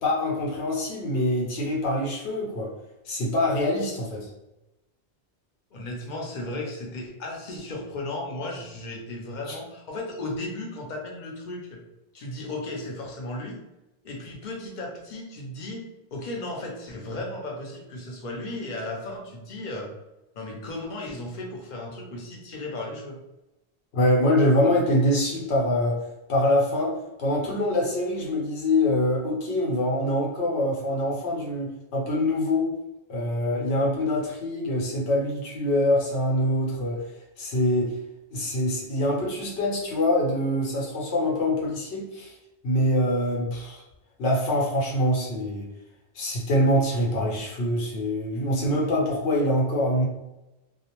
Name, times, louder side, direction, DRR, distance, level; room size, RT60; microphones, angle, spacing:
voice 1, 0.0-2.7 3.1-4.3 9.5-9.6 23.9-32.8 33.1-38.0 38.3-42.4 42.6-43.8 44.2-45.7 46.1-50.1, left 1 dB, 85° left, -2 dB, 0.9 m, -24 dB
voice 2, 5.7-11.8 12.1-13.6 14.0-15.8 16.1-19.9 20.3-23.2, left 2 dB, 55° left, 0 dB, 0.7 m, -35 dB
2.4 x 2.0 x 2.9 m, 0.96 s
omnidirectional pair, 1.1 m